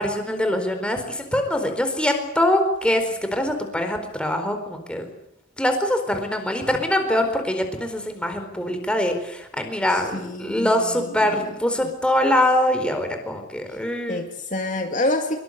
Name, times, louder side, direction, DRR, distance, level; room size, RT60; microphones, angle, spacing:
voice 1, 0.0-5.1 5.6-14.2, left 1 dB, 5° left, 5 dB, 4.4 m, -23 dB
voice 2, 9.9-11.4 11.8-11.9 14.1-15.4, left 1 dB, 40° left, 3 dB, 2.4 m, -28 dB
25.0 x 23.5 x 8.3 m, 0.83 s
head